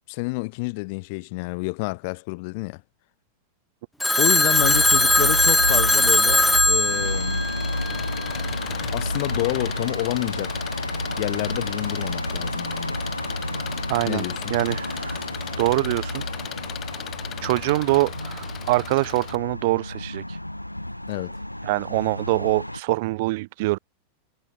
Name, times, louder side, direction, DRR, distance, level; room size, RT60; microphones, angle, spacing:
voice 1, 0.1-2.8 4.2-7.5 8.9-10.6 11.2-13.0 14.1-14.5 21.1-21.4, left 29 dB, 45° left, 3.4 m, -29 dB
Telephone, 4.0-8.2, left 1 dB, 5° left, 2.3 m, -20 dB
sound 1, 4.5-22.8, left 1 dB, 85° left, 2.4 m, -30 dB
Engine, 6.8-19.4, left 11 dB, 30° left, 7.5 m, -37 dB
voice 2, 13.9-14.2 14.5-15.2 15.6-16.2 17.4-20.4 21.6-23.8, right 21 dB, 50° right, 2.1 m, -24 dB
figure-of-eight pair, 90°, 0 cm